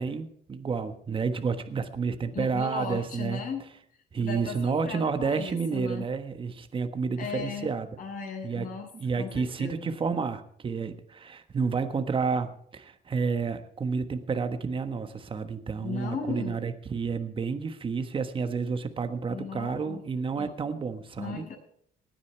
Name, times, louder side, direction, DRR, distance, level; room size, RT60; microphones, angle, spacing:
voice 1, 0.0-3.4 4.1-7.9 8.4-8.7 8.9-21.4, right 5 dB, 30° right, 9 dB, 1.4 m, -30 dB
voice 2, 2.3-3.6 4.2-6.1 7.2-7.7 8.0-8.9 9.2-9.9 15.8-16.6 19.3-20.0 20.4-20.5 21.2-21.5, left 5 dB, 55° left, 1 dB, 7.5 m, -36 dB
19.0 x 9.6 x 4.5 m, 0.65 s
cardioid pair, 110°, 17 cm